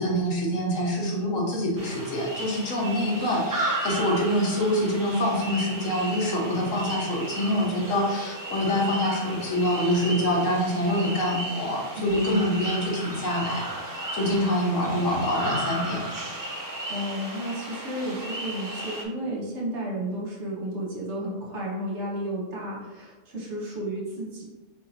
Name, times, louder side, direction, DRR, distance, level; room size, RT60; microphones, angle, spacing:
voice 1, 0.0-16.0, equal, 75° left, -2 dB, 1.4 m, -25 dB
sound 1, 1.8-19.0, right 1 dB, 25° right, 0.4 m, -35 dB
voice 2, 12.0-12.4 16.5-16.6 16.9-24.4, equal, 60° right, -4 dB, 1.4 m, -32 dB
4.4 x 3.7 x 2.8 m, 1.2 s
omnidirectional pair, 1.4 m